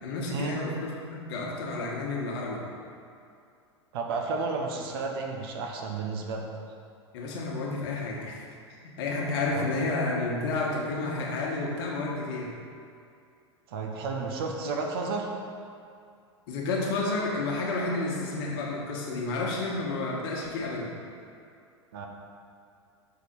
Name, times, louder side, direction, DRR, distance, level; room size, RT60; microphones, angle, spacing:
voice 1, 0.0-2.6 7.1-8.4 8.8-12.5 16.5-20.9, left 2 dB, 55° left, -2 dB, 1.3 m, -31 dB
voice 2, 3.9-6.4 9.5-9.7 13.7-15.3 21.9-22.1, right 4 dB, 55° right, 2 dB, 0.9 m, -32 dB
6.7 x 4.7 x 4.3 m, 2.4 s
figure-of-eight pair, 85°, 15 cm